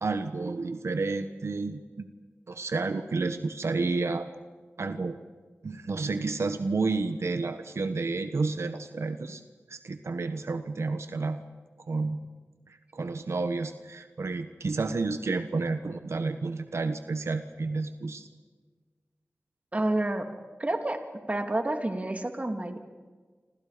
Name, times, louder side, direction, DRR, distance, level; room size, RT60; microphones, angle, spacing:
voice 1, 0.0-2.1 2.5-4.3 4.8-5.2 5.6-9.4 9.7-11.4 11.8-12.2 12.7-18.3, right 3 dB, 90° right, 9 dB, 1.2 m, -30 dB
voice 2, 19.7-20.3 20.6-21.0 21.3-22.8, right 1 dB, 30° right, 5 dB, 2.9 m, -29 dB
28.0 x 26.5 x 5.2 m, 1.4 s
wide cardioid pair, 80°, 5 cm